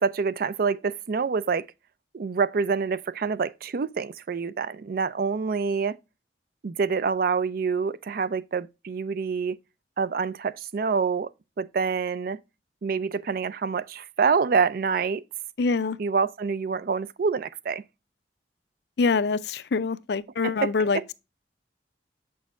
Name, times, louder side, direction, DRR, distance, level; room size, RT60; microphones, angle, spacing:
voice 1, 0.0-1.7 2.1-6.0 6.6-9.6 10.0-11.3 11.6-12.4 12.8-15.2 16.0-17.8 20.4-21.0, right 5 dB, 55° right, 0.4 m, -26 dB
voice 2, 15.6-16.0 19.0-21.1, left 4 dB, 65° left, 0.4 m, -25 dB
6.8 x 6.3 x 2.4 m
head